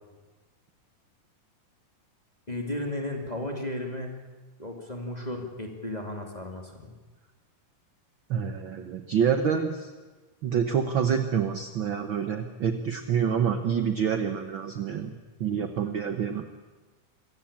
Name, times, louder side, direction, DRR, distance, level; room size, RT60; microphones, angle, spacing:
voice 1, 2.5-4.1 4.6-6.9, left 1 dB, 15° left, 2 dB, 1.8 m, -34 dB
voice 2, 8.3-9.9 10.4-16.4, right 7 dB, 75° right, 7 dB, 1.1 m, -27 dB
26.0 x 15.0 x 8.7 m, 1.3 s
omnidirectional pair, 3.8 m